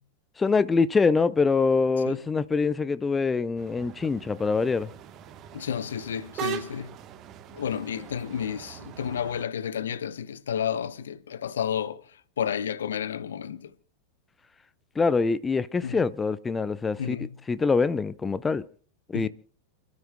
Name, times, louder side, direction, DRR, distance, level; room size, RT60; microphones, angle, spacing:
voice 1, 0.4-4.9 15.0-17.2 17.5-18.6 19.1-19.3, left 4 dB, 15° left, 0.5 m, -24 dB
sound 1, 3.6-9.4, right 10 dB, 35° right, 1.1 m, -41 dB
voice 2, 5.5-7.0 7.5-12.0 12.4-13.7 15.8-16.0 17.0-17.4 19.1-19.3, left 8 dB, 65° left, 0.8 m, -31 dB
29.5 x 13.0 x 2.2 m
figure-of-eight pair, 90°, 0 cm